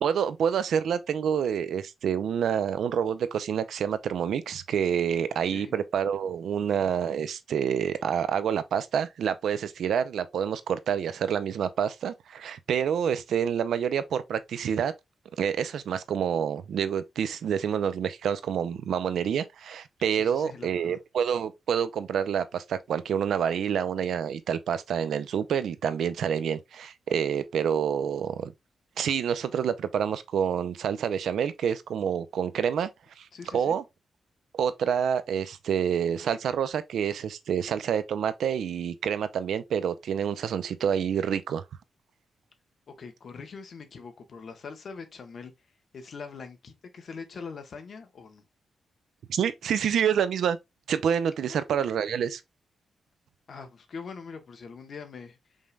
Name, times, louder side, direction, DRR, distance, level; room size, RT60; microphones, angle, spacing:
voice 1, 0.0-14.9 15.4-28.5 29.0-32.9 33.2-33.3 33.5-33.8 34.5-41.6 49.3-50.6 50.9-52.4, right 8 dB, 80° right, 0.5 m, -28 dB
voice 2, 20.1-21.0 33.3-33.8 42.9-45.5 45.9-48.4 51.4-51.9 53.5-55.4, left 5 dB, 50° left, 1.0 m, -43 dB
5.3 x 3.3 x 2.3 m
wide cardioid pair, 145°, 0 cm